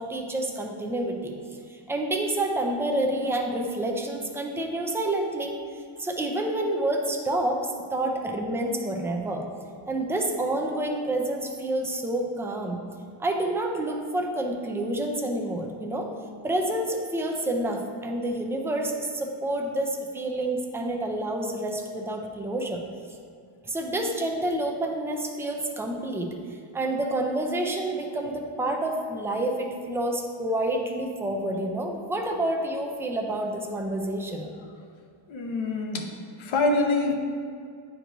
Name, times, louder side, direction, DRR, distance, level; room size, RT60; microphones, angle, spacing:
voice 1, 0.0-1.3 1.7-5.5 6.0-9.4 9.9-12.8 13.2-16.1 16.4-22.8 23.6-34.5, right 1 dB, 5° right, 1 dB, 0.4 m, -28 dB
voice 2, 35.3-36.1 36.4-37.1, left 2 dB, 65° left, 3 dB, 0.9 m, -25 dB
8.8 x 4.6 x 2.6 m, 2.3 s
cardioid pair, 130°, 49 cm